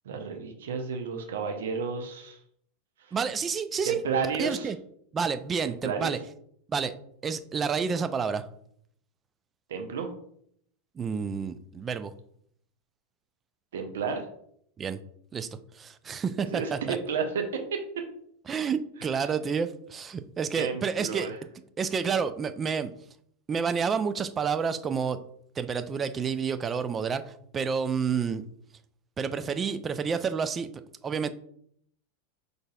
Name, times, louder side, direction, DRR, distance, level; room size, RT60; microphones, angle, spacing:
voice 1, 0.0-2.4 3.0-3.1 3.9-4.7 5.7-6.2 9.7-10.1 13.7-14.3 16.4-18.0 19.0-19.1 20.6-21.4, right 5 dB, 65° right, 5 dB, 0.6 m, -32 dB
voice 2, 3.1-4.0 4.4-4.8 5.1-6.2 6.7-6.9 7.2-8.5 11.0-12.1 14.8-15.0 15.3-15.5 15.7-17.0 18.5-21.3 21.8-22.9 23.5-25.2 25.6-28.4 29.2-30.7 31.0-31.3, right 6 dB, 25° right, 12 dB, 0.3 m, -29 dB
5.2 x 3.9 x 2.3 m, 0.68 s
figure-of-eight pair, 85°, 0 cm